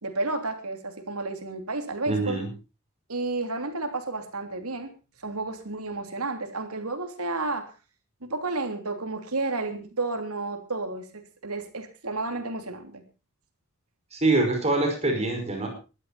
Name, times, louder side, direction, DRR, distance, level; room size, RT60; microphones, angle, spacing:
voice 1, 0.0-2.4 3.1-4.9 5.2-7.7 8.2-13.0, right 3 dB, 85° right, 7 dB, 3.2 m, -31 dB
voice 2, 2.1-2.5 14.1-15.7, right 2 dB, 30° right, 3 dB, 5.3 m, -24 dB
19.5 x 12.5 x 4.2 m, 0.33 s
head